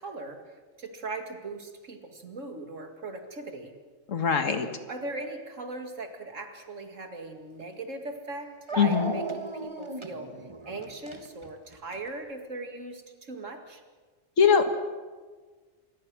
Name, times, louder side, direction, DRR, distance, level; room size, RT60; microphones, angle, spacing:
voice 1, 0.0-3.7 4.9-13.8, right 2 dB, 75° right, 5 dB, 2.5 m, -39 dB
voice 2, 4.1-4.7 8.8-9.1 14.4-14.7, left 6 dB, 75° left, 8 dB, 2.0 m, -22 dB
Dog, 7.6-7.7 8.7-12.1, right 3 dB, 25° right, 1.5 m, -35 dB
27.0 x 22.0 x 6.2 m, 1.4 s
omnidirectional pair, 1.3 m